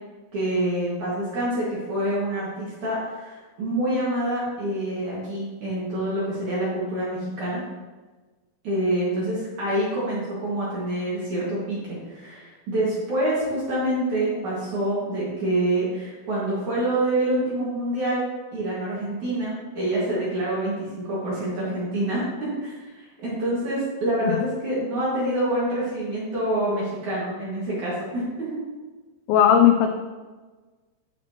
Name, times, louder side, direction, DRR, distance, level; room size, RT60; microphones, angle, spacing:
voice 1, 0.3-7.6 8.6-28.5, right 1 dB, 55° right, -8 dB, 2.4 m, -26 dB
voice 2, 29.3-30.0, left 9 dB, 85° left, 4 dB, 2.5 m, -17 dB
11.5 x 5.9 x 2.9 m, 1.3 s
omnidirectional pair, 5.7 m